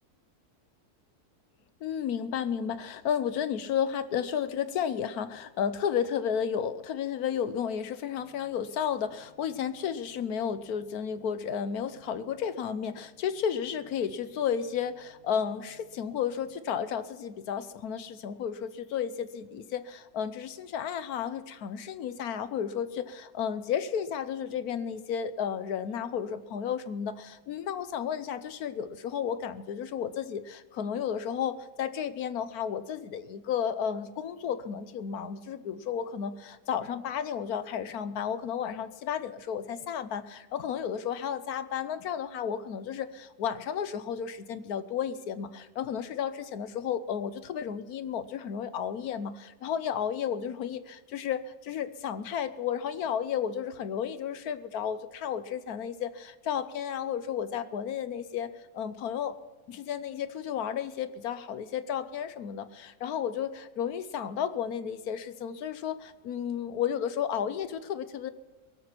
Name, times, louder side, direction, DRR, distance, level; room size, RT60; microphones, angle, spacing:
voice 1, 1.8-59.3 59.7-68.3, left 8 dB, 70° left, 12 dB, 1.2 m, -33 dB
sound 1, 8.1-16.6, right 2 dB, 40° right, 4.1 m, -62 dB
22.5 x 7.8 x 5.8 m, 1.2 s
omnidirectional pair, 1.7 m